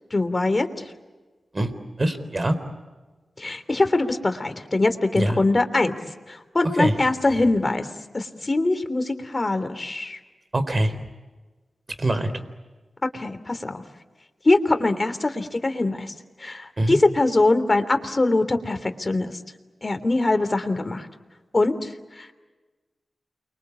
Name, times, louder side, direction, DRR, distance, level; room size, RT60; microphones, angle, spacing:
voice 1, 0.1-0.7 3.4-5.9 6.3-7.9 8.1-10.2 13.1-13.8 14.4-16.1 16.4-19.4 19.8-21.1 21.5-22.3, left 2 dB, 40° left, 9 dB, 3.2 m, -23 dB
voice 2, 2.0-2.5 5.1-5.4 6.8-6.9 10.5-11.0 12.0-12.3 16.8-17.0, right 1 dB, 40° right, 10 dB, 4.0 m, -23 dB
29.5 x 24.0 x 8.5 m, 1.2 s
cardioid pair, 45°, 0 cm